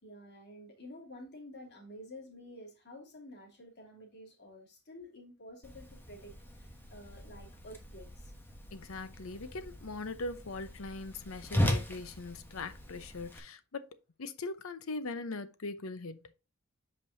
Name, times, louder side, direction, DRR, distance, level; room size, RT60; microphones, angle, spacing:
voice 1, 0.0-8.3, left 1 dB, 50° left, 2.9 m, -50 dB
Whoosh swoosh swish, 5.6-13.4, left 1 dB, 10° left, 1.1 m, -38 dB
voice 2, 8.7-13.9 14.2-16.2, left 3 dB, 75° left, 0.8 m, -40 dB
8.5 x 5.3 x 2.7 m
head